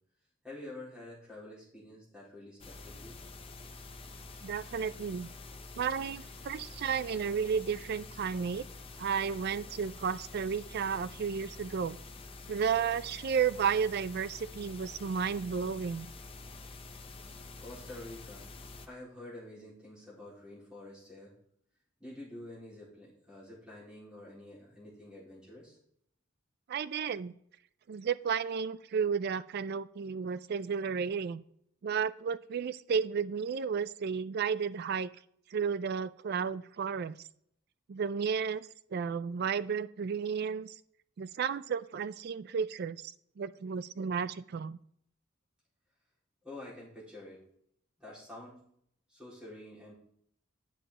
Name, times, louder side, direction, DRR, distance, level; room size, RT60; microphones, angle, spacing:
voice 1, 0.4-3.2 17.6-18.5 18.8-21.3 22.0-25.8 46.4-47.4 48.0-48.6 49.1-49.9, left 1 dB, 5° right, -7 dB, 4.0 m, -48 dB
sound 1, 2.6-18.9, left 3 dB, 25° left, 0.7 m, -48 dB
voice 2, 4.4-5.3 5.8-8.6 9.0-12.0 12.5-16.1 26.7-27.3 27.9-31.4 31.8-35.1 35.5-37.2 37.9-40.7 41.2-44.8, right 6 dB, 50° right, 16 dB, 0.3 m, -33 dB
9.2 x 6.6 x 3.7 m, 0.67 s
head